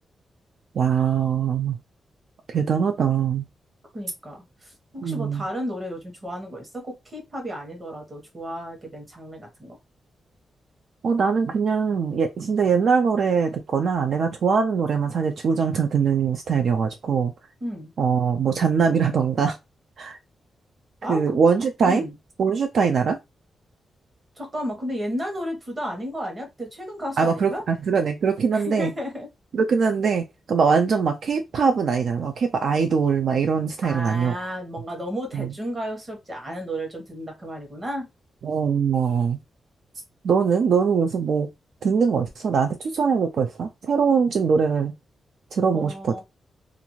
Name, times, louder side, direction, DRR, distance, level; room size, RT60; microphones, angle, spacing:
voice 1, 0.8-1.8 2.5-3.4 5.0-5.4 11.0-17.3 18.0-19.6 20.0-20.2 21.1-22.0 22.4-23.2 27.2-28.9 29.5-34.5 35.3-35.5 38.4-39.4 40.2-41.5 41.8-44.9 45.5-46.2, right 6 dB, 65° right, 0.3 m, -22 dB
voice 2, 3.9-9.8 17.6-17.9 21.0-21.4 21.8-22.1 24.4-27.6 28.5-29.3 33.8-38.1 45.7-46.2, equal, 25° right, 1.0 m, -33 dB
2.5 x 2.4 x 3.0 m
wide cardioid pair, 135°, 0 cm